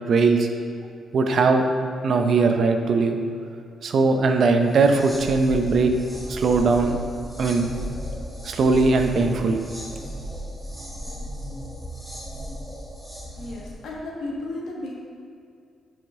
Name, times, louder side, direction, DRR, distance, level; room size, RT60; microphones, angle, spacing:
voice 1, 0.1-0.5 1.1-1.7 2.0-3.2 3.8-5.9 6.3-7.0 7.4-7.7 8.4-9.6, right 4 dB, 50° right, 5 dB, 0.6 m, -20 dB
sound 1, 4.7-13.8, equal, 5° right, 1.2 m, -35 dB
voice 2, 13.3-15.0, left 2 dB, 70° left, -3 dB, 1.5 m, -34 dB
9.0 x 5.1 x 3.6 m, 2.3 s
cardioid pair, 140°, 0 cm